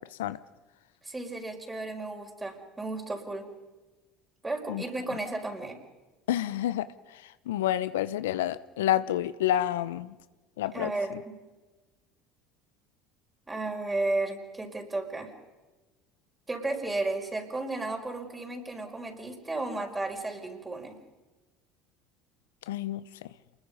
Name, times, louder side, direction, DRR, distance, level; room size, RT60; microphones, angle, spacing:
voice 1, 1.0-3.5 4.4-5.8 10.7-11.4 13.5-15.3 16.5-21.0, right 2 dB, 15° right, 5.0 m, -33 dB
voice 2, 6.3-6.9 7.5-10.2 10.6-10.9 22.7-23.0, left 12 dB, 80° left, 0.7 m, -28 dB
28.0 x 21.5 x 5.4 m
hypercardioid pair, 70°, 0 cm